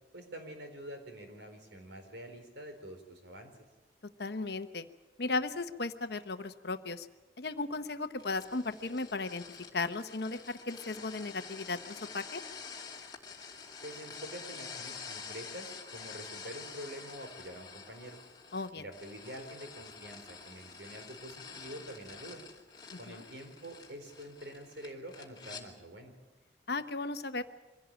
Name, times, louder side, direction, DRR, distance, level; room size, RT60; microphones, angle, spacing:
voice 1, 0.1-3.5 13.8-18.2 18.8-22.4 23.0-26.1, right 1 dB, 70° right, 5 dB, 4.3 m, -46 dB
voice 2, 4.2-4.9 5.2-7.1 7.4-9.4 9.7-12.4 18.5-18.8 22.9-23.2 26.7-27.4, left 3 dB, 60° left, 9 dB, 1.0 m, -36 dB
sound 1, 8.2-25.6, left 5 dB, 25° left, 2.4 m, -48 dB
24.5 x 16.5 x 9.0 m, 1.2 s
head